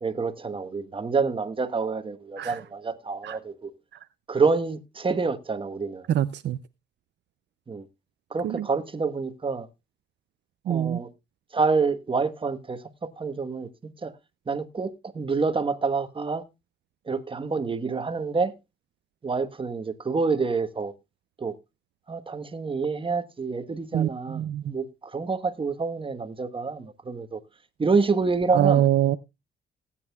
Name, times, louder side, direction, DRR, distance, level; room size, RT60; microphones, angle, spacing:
voice 1, 0.0-3.7 4.3-6.1 7.7-7.9 8.3-9.7 10.7-11.1 11.5-12.8 13.2-13.7 14.0-14.2 14.5-16.4 17.1-18.5 19.2-20.9 21.4-21.5 22.1-27.4 27.8-28.8, right 4 dB, 25° right, 1.2 m, -27 dB
voice 2, 6.1-6.6 8.4-8.7 10.7-11.0 23.9-24.7 28.5-29.2, right 11 dB, 60° right, 0.5 m, -24 dB
19.0 x 8.7 x 2.3 m
cardioid pair, 90°, 20 cm